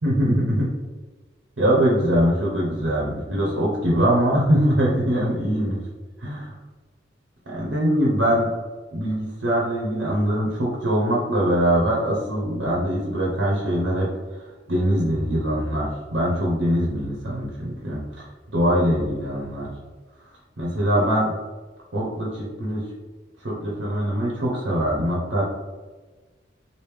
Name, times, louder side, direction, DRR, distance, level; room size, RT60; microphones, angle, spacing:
voice 1, 0.0-0.7 1.6-5.7 6.2-6.5 7.5-8.5 8.9-14.1 14.7-18.3 18.5-19.7 20.6-21.3 21.9-22.8 23.4-25.4, equal, 80° right, -3 dB, 0.7 m, -22 dB
3.1 x 2.6 x 3.3 m, 1.3 s
head